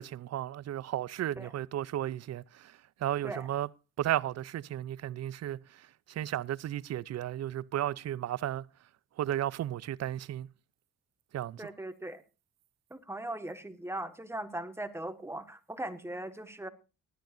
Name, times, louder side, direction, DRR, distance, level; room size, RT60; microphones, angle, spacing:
voice 1, 0.0-2.7 3.0-3.7 4.0-5.8 6.1-8.7 9.2-10.5 11.3-11.7, right 12 dB, 60° right, 0.6 m, -34 dB
voice 2, 11.6-12.2 12.9-16.7, right 1 dB, 10° right, 1.6 m, -39 dB
19.0 x 11.5 x 2.6 m
cardioid pair, 90°, 30 cm